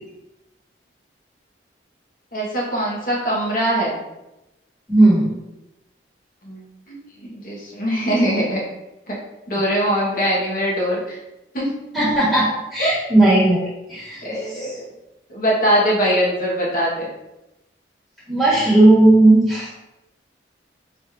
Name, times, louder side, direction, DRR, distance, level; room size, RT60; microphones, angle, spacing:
voice 1, 2.3-4.0 6.4-8.6 9.1-9.2 9.5-11.2 11.5-11.7 12.8-12.9 14.2-14.9 15.3-17.1, equal, 45° left, -4 dB, 1.2 m, -22 dB
voice 2, 4.9-5.4 11.9-13.6 13.9-14.7 18.3-19.7, right 2 dB, ahead, -10 dB, 1.4 m, -15 dB
3.2 x 2.6 x 4.4 m, 0.95 s
head